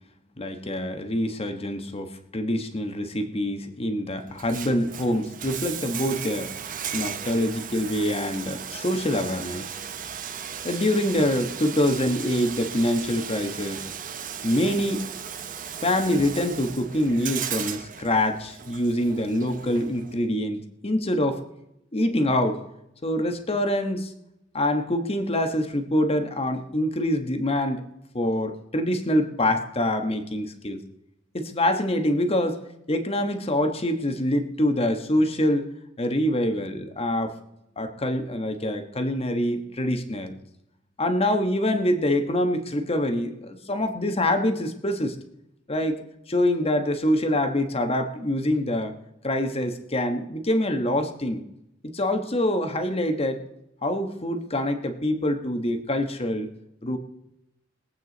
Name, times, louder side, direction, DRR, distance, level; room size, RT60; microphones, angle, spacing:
voice 1, 0.4-6.5 6.9-9.7 10.6-13.8 14.4-15.1 15.8-21.4 21.9-22.6 23.0-24.1 24.5-27.8 28.1-30.8 31.3-32.6 32.9-35.7 36.0-37.4 37.8-40.3 41.0-45.1 45.7-48.9 49.2-51.4 51.9-53.5 53.8-56.5 56.8-57.0, left 1 dB, 30° left, 7 dB, 1.4 m, -25 dB
Bathtub (filling or washing), 4.3-20.2, right 8 dB, 45° right, 0.8 m, -36 dB
21.5 x 8.6 x 4.1 m, 0.84 s
head